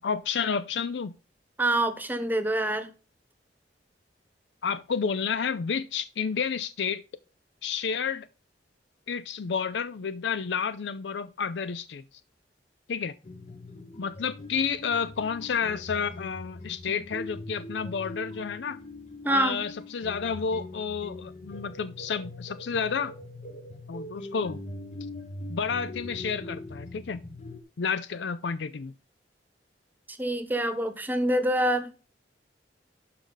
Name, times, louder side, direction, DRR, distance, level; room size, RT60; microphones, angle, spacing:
voice 1, 0.0-1.2 4.6-7.0 7.6-8.3 9.1-12.0 12.9-13.1 14.0-18.8 19.3-23.1 23.9-24.6 25.5-27.2 27.8-28.9, left 6 dB, 85° left, 0.5 m, -30 dB
voice 2, 1.6-2.9 19.2-19.6 30.1-31.9, right 1 dB, 10° right, 1.1 m, -26 dB
sound 1, 13.2-27.6, left 2 dB, 40° left, 1.0 m, -42 dB
12.0 x 4.8 x 3.9 m
head